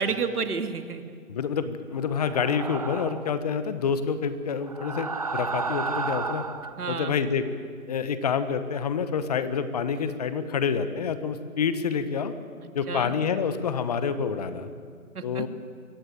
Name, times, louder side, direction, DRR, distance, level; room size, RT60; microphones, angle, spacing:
voice 1, 0.0-1.2 6.8-7.1 12.9-13.1 15.1-15.5, right 5 dB, 80° right, 7 dB, 2.4 m, -30 dB
voice 2, 1.3-6.4 6.9-7.4 7.9-12.3 12.7-14.7 15.2-15.5, left 6 dB, 25° left, 11 dB, 1.1 m, -27 dB
sound 1, 2.2-3.4 4.6-6.8, right 4 dB, 25° right, 0.6 m, -32 dB
23.5 x 15.5 x 9.2 m, 2.1 s
hypercardioid pair, 160°, 44 cm